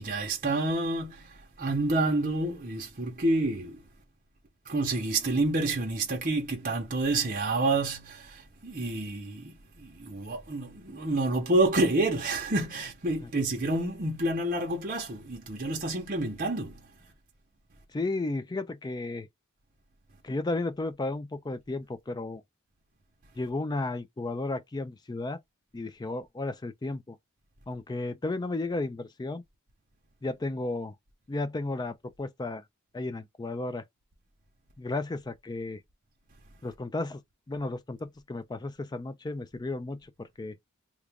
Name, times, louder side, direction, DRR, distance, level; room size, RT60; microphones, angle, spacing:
voice 1, 0.0-3.8 4.7-16.8, right 2 dB, 40° right, 0.9 m, -29 dB
voice 2, 17.9-19.3 20.2-22.4 23.4-25.4 25.7-27.2 27.7-29.4 30.2-30.9 31.3-32.6 32.9-33.8 34.8-35.8 36.6-37.2 37.5-40.6, left 2 dB, 20° left, 0.4 m, -33 dB
2.9 x 2.4 x 3.5 m
head